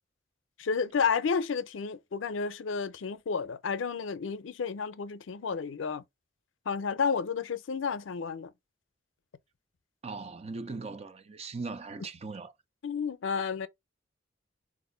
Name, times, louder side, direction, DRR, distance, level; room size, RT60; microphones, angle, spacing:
voice 1, 0.6-6.0 6.7-8.5 12.8-13.7, left 5 dB, 90° left, 0.5 m, -31 dB
voice 2, 10.0-12.5, right 3 dB, 35° right, 0.6 m, -39 dB
4.2 x 2.6 x 3.8 m
head